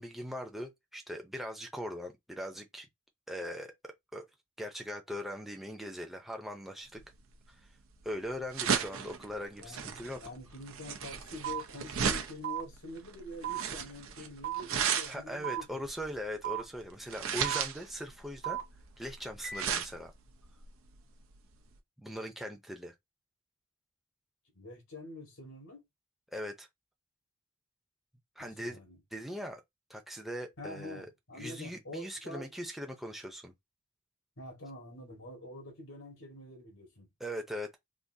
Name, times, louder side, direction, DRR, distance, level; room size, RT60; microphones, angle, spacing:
voice 1, 0.0-2.9 3.3-4.3 4.6-7.0 8.0-10.2 15.1-18.6 19.0-20.1 22.0-22.9 26.3-26.7 28.4-28.8 29.1-29.6 29.9-31.1 31.3-33.5 37.2-37.8, equal, ahead, 0.6 m, -40 dB
sound 1, 7.0-21.8, right 7 dB, 80° right, 0.7 m, -36 dB
voice 2, 9.6-9.9 10.2-15.9 24.5-25.8 28.4-29.0 30.6-32.5 34.4-37.1, left 2 dB, 85° left, 1.6 m, -46 dB
sound 2, 11.4-11.6 12.4-12.6 13.4-13.6 14.4-14.6 15.4-15.6 16.4-16.6 17.4-17.6 18.4-18.6 19.4-19.6, right 12 dB, 55° right, 1.1 m, -34 dB
3.8 x 2.6 x 2.7 m
head